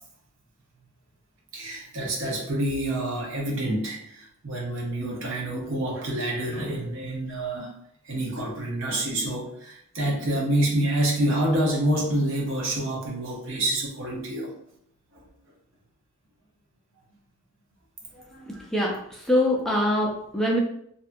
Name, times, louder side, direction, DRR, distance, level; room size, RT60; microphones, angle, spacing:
voice 1, 1.5-7.7 8.0-14.5 15.1-15.3 18.1-18.6, right 1 dB, 60° right, -2 dB, 0.7 m, -27 dB
voice 2, 19.3-20.6, left 1 dB, ahead, -2 dB, 0.4 m, -23 dB
2.7 x 2.4 x 2.5 m, 0.69 s
head